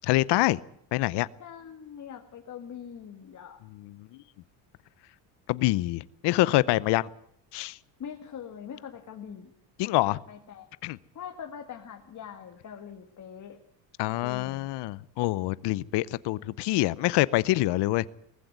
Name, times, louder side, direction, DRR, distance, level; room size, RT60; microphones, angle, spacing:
voice 1, 0.0-0.6 0.9-1.3 3.8-3.9 5.5-7.1 7.5-7.8 9.8-10.2 10.8-11.0 14.0-18.0, left 18 dB, 70° left, 19 dB, 0.7 m, -25 dB
voice 2, 1.4-3.6 8.0-9.5 10.0-10.7 11.1-13.6 14.2-14.7, left 8 dB, 40° left, 4 dB, 2.0 m, -43 dB
19.0 x 15.5 x 9.4 m, 0.70 s
cardioid pair, 115°, 43 cm